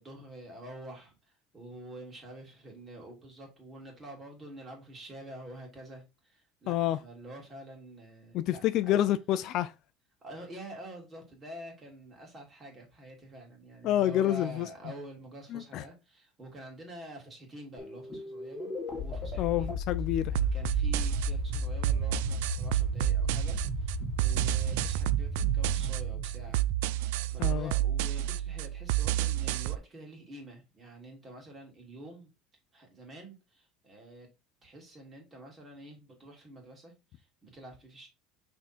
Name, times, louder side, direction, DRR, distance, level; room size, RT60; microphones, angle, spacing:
voice 1, 0.0-9.1 10.2-19.8 20.3-26.6 27.0-32.3 32.7-34.3 34.6-38.1, right 1 dB, 20° right, 2.6 m, -47 dB
voice 2, 6.7-7.0 8.3-9.7 13.8-14.7 15.5-15.8 19.4-20.3 27.4-27.7, left 12 dB, 50° left, 0.4 m, -28 dB
sound 1, 17.8-27.1, left 2 dB, 15° left, 2.2 m, -36 dB
sound 2, 20.3-29.8, right 13 dB, 90° right, 0.4 m, -30 dB
6.0 x 3.6 x 4.3 m
cardioid pair, 160°, 0 cm